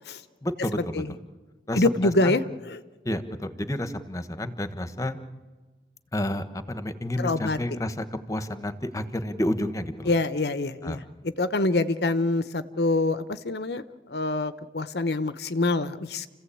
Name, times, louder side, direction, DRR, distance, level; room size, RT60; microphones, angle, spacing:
voice 1, 0.4-1.0 1.7-2.4 3.0-5.2 6.1-10.1 10.8-11.0, left 1 dB, 20° left, 11 dB, 1.3 m, -30 dB
voice 2, 1.7-2.4 7.2-7.6 10.1-11.0 11.4-13.8 14.1-16.3, left 2 dB, 70° left, 13 dB, 0.9 m, -25 dB
29.5 x 16.0 x 8.6 m, 1.3 s
head